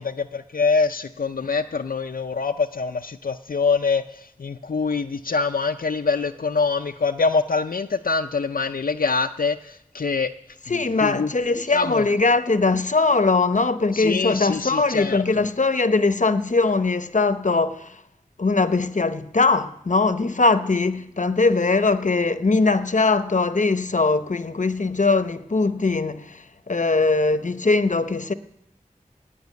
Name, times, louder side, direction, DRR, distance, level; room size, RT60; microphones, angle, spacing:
voice 1, 0.0-10.3 10.7-11.3 11.7-12.0 13.9-15.5, left 4 dB, 85° left, 0.5 m, -24 dB
voice 2, 10.6-18.0 18.4-28.3, left 3 dB, 60° left, 0.8 m, -21 dB
17.5 x 6.1 x 9.5 m
wide cardioid pair, 45°, 15 cm